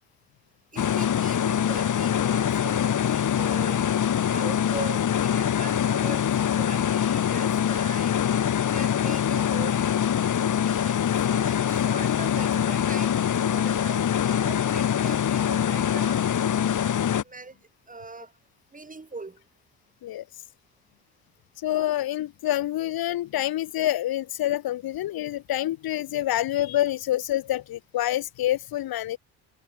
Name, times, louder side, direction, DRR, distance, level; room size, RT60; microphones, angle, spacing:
voice 1, 0.7-3.8 4.3-8.2 8.7-9.8 10.2-10.3 10.7-10.9 11.2-16.2 17.2-17.5 17.9-18.3 18.7-19.4, right 3 dB, 20° right, 7.9 m, -41 dB
sound 1, 0.8-17.2, left 9 dB, 50° left, 3.3 m, -24 dB
voice 2, 21.6-29.2, left 13 dB, 65° left, 2.1 m, -27 dB
cardioid pair, 90°, 38 cm